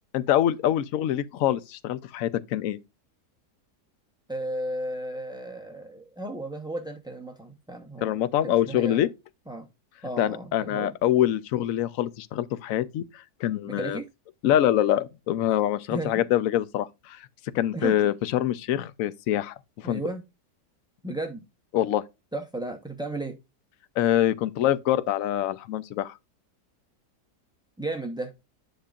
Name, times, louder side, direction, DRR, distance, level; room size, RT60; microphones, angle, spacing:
voice 1, 0.1-2.8 8.0-9.1 10.2-13.0 13.4-14.0 14.4-17.2 17.5-20.0 21.7-22.0 24.0-26.1, left 12 dB, 65° left, 0.9 m, -25 dB
voice 2, 4.3-9.0 9.5-9.7 10.0-10.9 13.7-14.1 15.9-16.1 17.7-18.0 19.8-20.2 21.0-21.4 22.3-23.4 27.8-28.3, right 2 dB, 5° right, 0.5 m, -34 dB
10.5 x 5.7 x 2.4 m
omnidirectional pair, 1.7 m